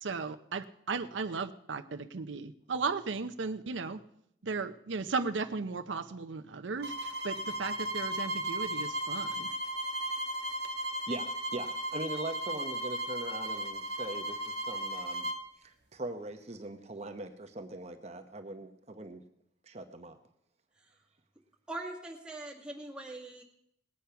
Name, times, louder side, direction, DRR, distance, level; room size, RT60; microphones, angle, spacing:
voice 1, 0.0-4.0 4.4-9.5, right 4 dB, 85° right, 7 dB, 0.7 m, -36 dB
sound 1, 6.8-15.4, right 1 dB, 65° right, 1.3 m, -35 dB
voice 2, 11.1-15.3 15.6-19.2 19.7-20.2, right 2 dB, 35° right, 7 dB, 0.9 m, -41 dB
voice 3, 21.7-23.4, right 2 dB, 5° right, -2 dB, 2.0 m, -41 dB
19.5 x 8.5 x 5.7 m, 0.74 s
head